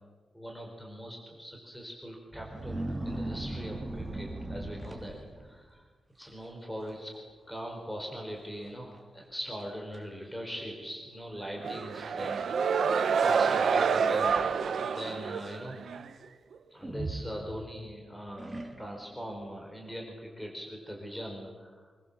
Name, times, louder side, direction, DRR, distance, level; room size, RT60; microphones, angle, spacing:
voice 1, 0.3-5.8 6.2-7.1 7.5-12.4 13.1-14.5 14.9-15.8 16.7-21.8, equal, 5° left, 1 dB, 4.1 m, -41 dB
sound 1, 2.3-5.6 6.2-6.5 6.8-7.2 7.5-7.6 8.4-8.5 9.0-9.1 9.6-10.0 10.8-10.9 13.8-14.8 16.8-17.9 18.4-19.1, right 2 dB, 15° right, 3.0 m, -38 dB
sound 2, 11.6-16.1, right 6 dB, 60° right, 1.4 m, -28 dB
25.5 x 22.5 x 7.1 m, 1.4 s
wide cardioid pair, 175°, 0 cm